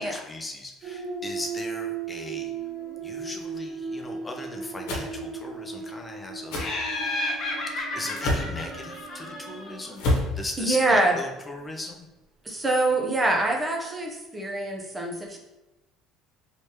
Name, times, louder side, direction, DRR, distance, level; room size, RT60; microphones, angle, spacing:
voice 1, 0.0-2.5 3.0-6.6 7.7-10.0 10.3-12.1, left 2 dB, 20° left, 2 dB, 0.5 m, -38 dB
sound 1, 0.8-11.1 12.6-13.2, right 5 dB, 55° right, 0.5 m, -38 dB
sound 2, 4.9-5.1 6.5-6.7 8.2-8.5 10.0-10.3, left 1 dB, 75° left, 0.9 m, -25 dB
Laughter, 6.6-9.9, left 2 dB, 45° left, 0.9 m, -32 dB
voice 2, 10.6-11.1 12.4-15.4, right 2 dB, 20° right, 1 dB, 0.7 m, -25 dB
3.2 x 3.1 x 2.9 m, 1.0 s
supercardioid pair, 90°, 0 cm